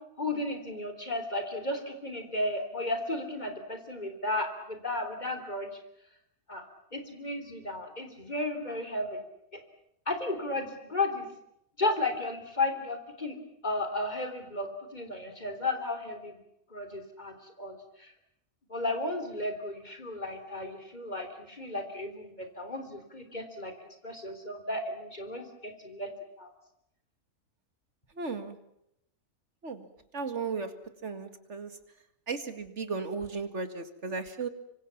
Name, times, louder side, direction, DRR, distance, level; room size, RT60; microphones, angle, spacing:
voice 1, 0.2-5.7 6.5-6.6 6.9-9.2 10.1-11.3 11.8-13.3 13.6-16.3 16.7-18.1 18.7-23.7 24.0-26.1 26.4-26.5, left 2 dB, 30° left, 7 dB, 3.7 m, -34 dB
voice 2, 28.2-28.6 29.6-29.9 30.1-30.7 31.0-31.7 32.3-34.5, right 4 dB, 50° right, 9 dB, 2.4 m, -35 dB
25.5 x 25.0 x 7.3 m, 0.77 s
omnidirectional pair, 1.5 m